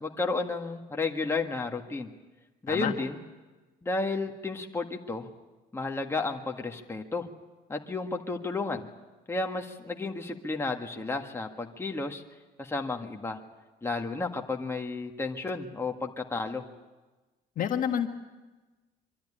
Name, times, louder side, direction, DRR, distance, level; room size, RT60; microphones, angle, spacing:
voice 1, 0.0-2.1 2.6-3.2 3.8-5.3 5.7-7.3 7.7-8.9 9.3-12.2 12.6-13.4 13.8-16.7, left 3 dB, 15° left, 2 dB, 1.8 m, -32 dB
voice 2, 17.6-18.1, left 9 dB, 55° left, 5 dB, 1.6 m, -28 dB
24.5 x 13.5 x 10.0 m, 1.2 s
cardioid pair, 110°, 17 cm